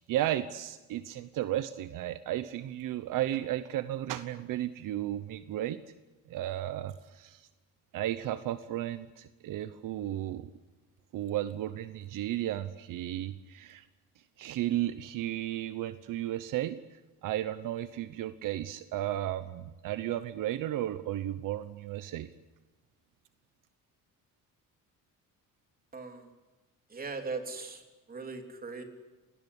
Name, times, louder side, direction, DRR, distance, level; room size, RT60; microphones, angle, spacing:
voice 1, 0.0-5.8 6.3-7.5 7.9-10.5 11.1-13.8 14.4-22.3, right 13 dB, 70° right, 13 dB, 1.0 m, -34 dB
voice 2, 25.9-26.3 26.9-27.8 28.1-28.8, right 4 dB, 25° right, 5 dB, 3.5 m, -39 dB
27.0 x 19.5 x 9.9 m, 1.2 s
cardioid pair, 145°, 33 cm